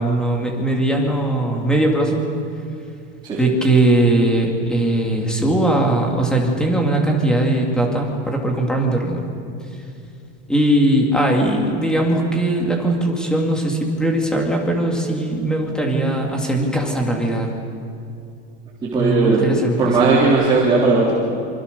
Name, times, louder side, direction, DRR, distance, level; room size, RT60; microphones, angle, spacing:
voice 1, 0.0-2.2 3.4-9.2 10.5-17.5 18.9-19.9, right 1 dB, ahead, 1 dB, 2.6 m, -19 dB
voice 2, 18.8-19.5 19.8-21.1, right 3 dB, 15° right, -7 dB, 3.8 m, -17 dB
27.0 x 26.5 x 6.9 m, 2.5 s
supercardioid pair, 175°, 32 cm